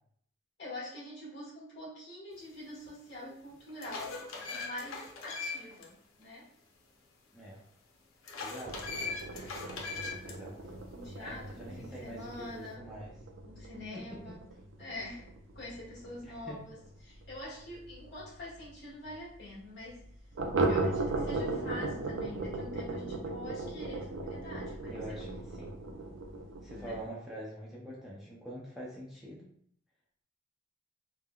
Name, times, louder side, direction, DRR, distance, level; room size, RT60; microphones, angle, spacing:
voice 1, 0.6-4.2 4.5-6.4 10.9-12.8 13.4-14.4 14.8-15.3 15.5-16.8 17.0-20.0 20.6-25.2 26.7-27.0, left 1 dB, 55° left, -7 dB, 1.3 m, -45 dB
sound 1, 2.8-2.9 3.5-5.8 6.2-6.3 8.2-10.3, left 4 dB, 85° left, 0.6 m, -40 dB
voice 2, 7.3-7.6 8.4-9.0 10.2-10.7 11.2-13.2 13.9-14.4 16.2-16.6 24.9-25.7 26.6-29.5, right 1 dB, ahead, -7 dB, 0.4 m, -45 dB
sound 2, 8.6-17.9 18.2-18.3 18.6-18.7 19.1-19.2 20.3-27.1, right 2 dB, 65° right, 0.4 m, -37 dB
3.5 x 2.0 x 2.2 m, 0.64 s
head